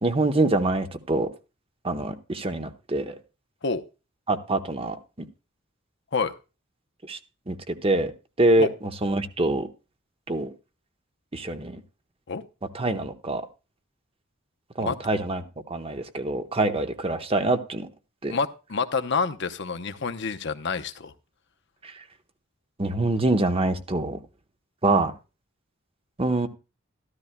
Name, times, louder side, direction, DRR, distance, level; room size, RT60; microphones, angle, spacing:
voice 1, 0.0-1.3 1.8-3.1 4.3-5.3 7.1-7.2 7.5-8.1 8.4-8.7 9.0-9.7 10.3-10.5 11.3-11.8 12.7-13.5 14.8-15.4 15.7-17.9 18.2-18.4 21.8-21.9 22.8-24.2 24.8-25.1 26.2-26.5, right 2 dB, 30° right, 1.0 m, -25 dB
voice 2, 18.3-21.1, left 5 dB, 60° left, 0.8 m, -28 dB
14.0 x 13.0 x 2.2 m
head